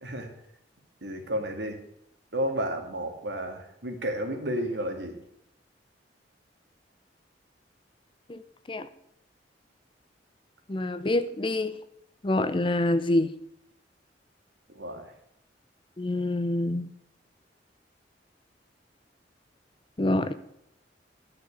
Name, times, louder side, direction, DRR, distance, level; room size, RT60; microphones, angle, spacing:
voice 1, 1.0-1.8 2.3-5.2 14.7-15.1, equal, 70° right, 4 dB, 2.2 m, -32 dB
voice 2, 10.7-11.8 12.2-13.3 16.0-16.9 20.0-20.3, left 1 dB, 30° left, 12 dB, 0.6 m, -26 dB
11.0 x 6.4 x 8.4 m, 0.76 s
head